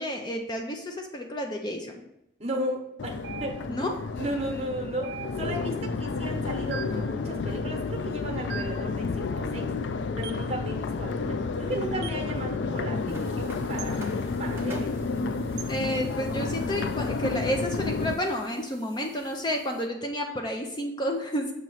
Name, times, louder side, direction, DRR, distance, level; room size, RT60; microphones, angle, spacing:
voice 1, 0.0-2.0 3.7-4.0 15.7-21.5, equal, 25° left, 2 dB, 0.5 m, -30 dB
voice 2, 2.4-3.8 4.1-9.7 10.2-14.0 14.4-14.9, right 1 dB, 35° right, 2 dB, 1.0 m, -35 dB
Crowd, 3.0-18.1, left 4 dB, 80° left, 0.4 m, -31 dB
sound 1, 3.2-3.9 5.0-5.7 6.7-7.1 8.5-8.9 10.2-10.5 12.0-12.3 13.8-14.0 15.6-15.8, right 8 dB, 65° right, 0.4 m, -40 dB
sound 2, 13.1-19.9, right 1 dB, 15° right, 0.7 m, -50 dB
6.7 x 3.0 x 5.5 m, 0.81 s
head